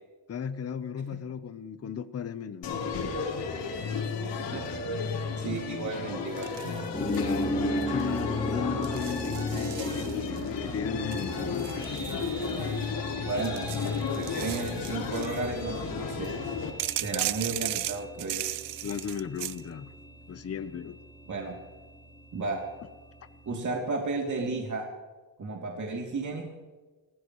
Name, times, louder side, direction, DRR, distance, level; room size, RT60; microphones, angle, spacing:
voice 1, 0.3-2.8 7.0-11.8 18.8-19.9 20.3-21.0, left 7 dB, 35° left, 12 dB, 0.9 m, -35 dB
sound 1, 2.6-16.7, left 5 dB, 70° left, 4.3 m, -33 dB
voice 2, 5.4-6.8 7.5-7.6 13.2-16.4 16.9-18.4 21.3-21.6 22.3-22.6 23.4-24.9 25.4-26.5, right 3 dB, 40° right, 0 dB, 3.0 m, -33 dB
sound 2, 6.4-7.4 7.8-8.2 8.8-10.5 11.1-12.8 13.3-15.5 16.8-19.6, right 14 dB, 65° right, 0.7 m, -36 dB
sound 3, 6.9-23.6, equal, 10° left, 2.6 m, -38 dB
28.5 x 16.0 x 3.2 m, 1.3 s
cardioid pair, 105°, 45 cm